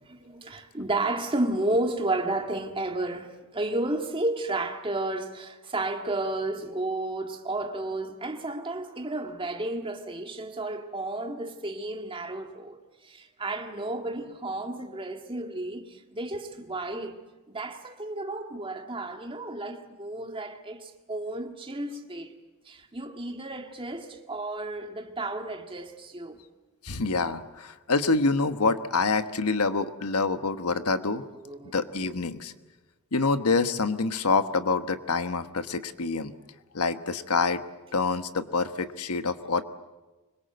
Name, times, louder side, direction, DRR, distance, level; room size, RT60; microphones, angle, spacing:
voice 1, 0.0-17.1 17.5-22.3 22.7-26.4 31.4-31.8, right 2 dB, 25° right, 1.9 m, -32 dB
voice 2, 26.8-31.2 31.7-32.5 33.1-36.3 36.7-37.6 37.9-39.6, left 4 dB, 90° left, 1.2 m, -26 dB
25.0 x 22.0 x 7.9 m
head